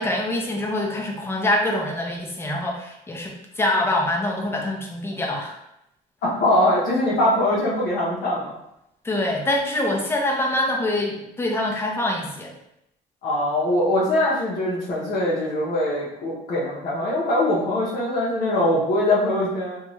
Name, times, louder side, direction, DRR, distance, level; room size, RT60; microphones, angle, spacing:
voice 1, 0.0-5.5 9.0-12.5, left 1 dB, 15° left, -1 dB, 0.6 m, -25 dB
voice 2, 6.2-8.5 13.2-19.8, left 1 dB, 60° left, -7 dB, 0.7 m, -22 dB
2.5 x 2.3 x 3.1 m, 0.82 s
cardioid pair, 110°, 17 cm